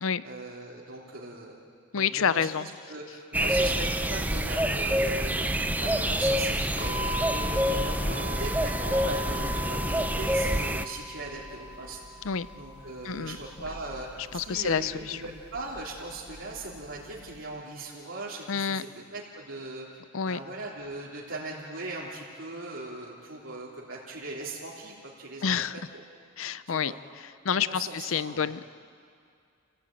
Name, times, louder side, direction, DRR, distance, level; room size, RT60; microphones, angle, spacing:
voice 1, 0.2-1.6 1.9-12.0 12.5-19.9 20.3-25.6 25.9-26.0 26.7-27.0 27.5-28.5, right 2 dB, 65° right, -5 dB, 3.2 m, -39 dB
voice 2, 1.9-2.7 12.2-12.5 13.0-13.4 14.3-15.2 18.5-18.8 20.1-20.4 25.4-25.7 26.4-28.6, left 7 dB, 70° left, 16 dB, 0.6 m, -28 dB
sound 1, 3.3-10.8, right 1 dB, 10° right, 0.6 m, -27 dB
sound 2, 6.8-17.4, left 1 dB, 40° left, 6.0 m, -40 dB
29.5 x 17.5 x 9.0 m, 2.3 s
head